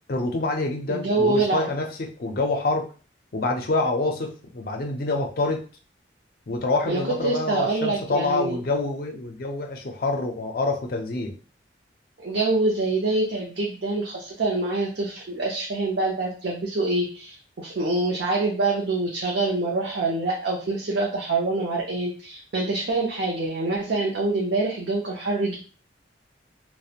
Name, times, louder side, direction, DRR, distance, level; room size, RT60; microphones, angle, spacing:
voice 1, 0.1-2.9 3.3-5.6 6.5-11.3, left 2 dB, 50° left, 3 dB, 0.4 m, -26 dB
voice 2, 0.9-1.7 6.8-8.6 12.2-25.6, right 2 dB, 60° right, -3 dB, 0.5 m, -25 dB
2.4 x 2.0 x 2.7 m, 0.37 s
head